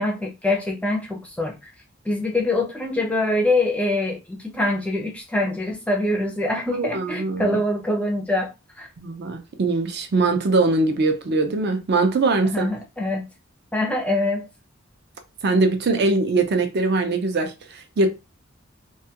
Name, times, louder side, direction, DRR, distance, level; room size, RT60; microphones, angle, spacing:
voice 1, 0.0-1.5 2.0-8.5 8.8-8.9 12.4-13.3 13.7-14.5, left 2 dB, 5° left, 0.4 m, -24 dB
voice 2, 6.7-7.6 9.0-12.7 15.4-18.1, right 3 dB, 50° right, 0.4 m, -22 dB
2.2 x 2.2 x 2.7 m
head